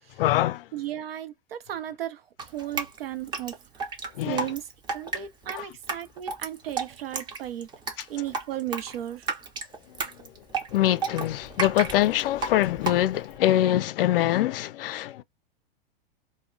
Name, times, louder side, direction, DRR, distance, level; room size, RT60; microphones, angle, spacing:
voice 1, 0.2-0.6 4.2-4.4 5.5-5.6 10.7-15.2, left 14 dB, 70° left, 0.4 m, -24 dB
voice 2, 0.7-3.9 4.2-7.7 8.1-9.3, right 12 dB, 85° right, 0.6 m, -35 dB
Drip, 2.4-13.4, right 4 dB, 15° right, 0.5 m, -33 dB
2.2 x 2.1 x 3.7 m
hypercardioid pair, 120°, 29 cm